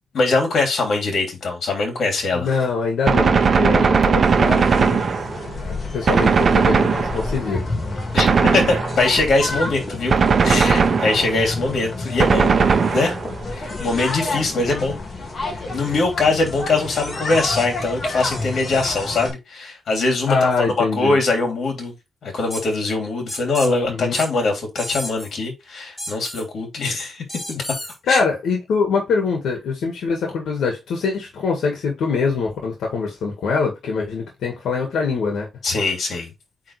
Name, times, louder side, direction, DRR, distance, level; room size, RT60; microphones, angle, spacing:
voice 1, 0.1-2.5 8.1-10.1 10.4-12.5 12.9-13.2 13.5-15.0 15.7-21.9 22.2-27.6 28.1-28.2 35.6-36.3, left 3 dB, 50° left, 3.1 m, -22 dB
voice 2, 2.3-5.1 5.6-7.7 20.3-21.2 23.9-24.2 28.1-35.5, left 4 dB, 85° left, 1.9 m, -23 dB
Gunshot gunfire, 3.1-5.6 6.1-7.5 8.2-9.2 10.1-11.5 12.2-13.4, right 5 dB, 35° right, 0.9 m, -18 dB
sound 1, 4.2-19.3, left 2 dB, 35° left, 2.3 m, -30 dB
sound 2, 22.5-22.6 23.3-23.7 24.1-24.3 24.8-25.3 26.0-26.4 27.3-28.0, left 1 dB, 10° left, 3.8 m, -31 dB
8.7 x 3.8 x 3.3 m
wide cardioid pair, 175°, 0 cm